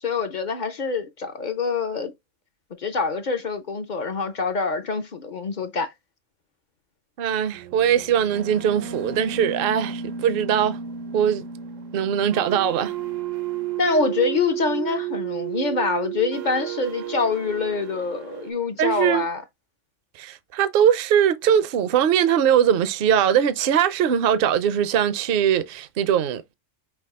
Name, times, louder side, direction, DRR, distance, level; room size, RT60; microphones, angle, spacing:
voice 1, 0.0-2.1 2.8-5.9 13.8-19.4, left 4 dB, 50° left, 0.6 m, -25 dB
voice 2, 7.2-10.8 11.1-11.5 11.9-12.9 18.8-19.3 20.2-26.5, right 9 dB, 55° right, 0.7 m, -21 dB
sound 1, 7.5-18.5, right 10 dB, 80° right, 1.2 m, -32 dB
5.9 x 2.4 x 3.5 m
omnidirectional pair, 1.3 m